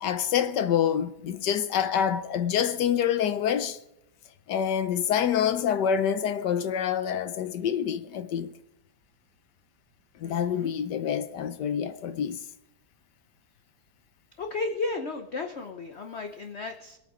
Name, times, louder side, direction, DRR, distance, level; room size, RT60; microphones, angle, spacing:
voice 1, 0.0-3.8 4.5-8.5 10.2-12.4, left 8 dB, 65° left, 1.3 m, -26 dB
voice 2, 10.2-10.7 14.4-17.0, left 3 dB, 50° left, 0.8 m, -34 dB
21.5 x 9.1 x 5.0 m
omnidirectional pair, 2.2 m